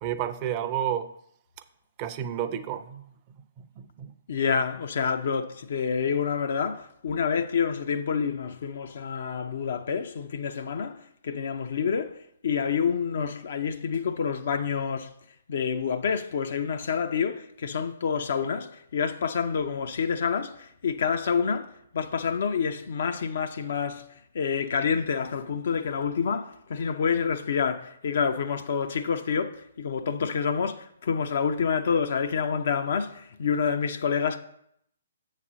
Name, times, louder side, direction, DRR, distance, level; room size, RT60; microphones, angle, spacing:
voice 1, 0.0-1.1 2.0-3.1 3.8-4.1, right 10 dB, 30° right, 0.5 m, -30 dB
voice 2, 4.3-15.1 15.5-24.0 24.3-34.4, left 6 dB, 50° left, 0.5 m, -28 dB
7.2 x 4.1 x 6.2 m
figure-of-eight pair, 125°, 0 cm